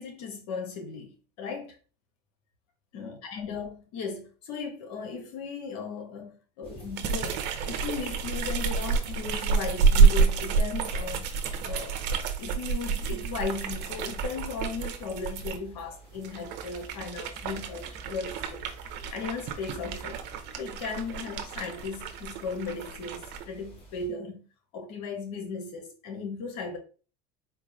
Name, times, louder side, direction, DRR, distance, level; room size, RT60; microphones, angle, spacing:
voice 1, 0.0-1.7 2.9-11.3 11.6-12.0 12.4-20.2 20.6-24.5 24.7-26.8, left 4 dB, 70° left, 1.3 m, -37 dB
sound 1, 6.6-24.1, right 2 dB, 25° left, 1.8 m, -50 dB
sound 2, 6.9-15.6 16.2-23.4, right 5 dB, 60° right, 0.8 m, -28 dB
4.4 x 2.4 x 3.2 m
hypercardioid pair, 95°, 20 cm